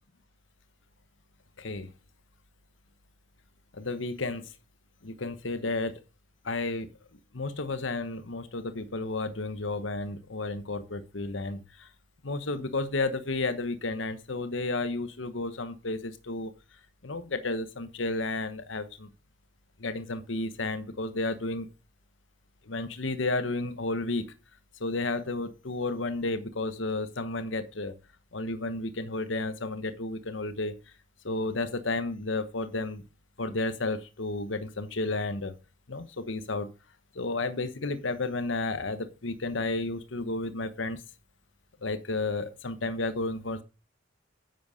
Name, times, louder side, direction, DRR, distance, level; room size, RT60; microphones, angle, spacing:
voice 1, 1.6-1.9 3.7-4.5 5.0-6.0 6.4-6.9 7.3-11.9 12.2-16.5 17.0-19.1 19.8-21.7 22.7-24.3 24.8-27.9 28.3-30.7 31.2-33.0 33.4-35.5 35.9-36.7 37.1-41.0 41.8-43.6, left 2 dB, 85° left, 11 dB, 1.1 m, -32 dB
10.0 x 8.0 x 6.4 m, 0.33 s
head